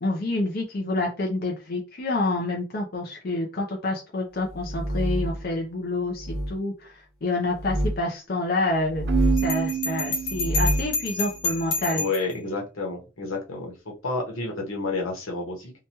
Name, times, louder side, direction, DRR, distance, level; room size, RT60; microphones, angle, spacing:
voice 1, 0.0-6.9 7.2-9.1 9.4-12.0, left 2 dB, 45° left, 0 dB, 0.5 m, -28 dB
sound 1, 4.5-5.4 6.2-6.5 7.5-8.0 8.8-9.6 10.2-10.9, equal, ahead, 0.9 m, -26 dB
Keyboard (musical), 9.1-10.9, right 10 dB, 55° right, 0.4 m, -28 dB
Bell, 9.4-12.3, left 3 dB, 70° left, 0.9 m, -29 dB
voice 2, 11.9-13.7 14.0-15.7, left 3 dB, 90° left, 0 dB, 1.0 m, -30 dB
2.9 x 2.2 x 2.9 m, 0.30 s
head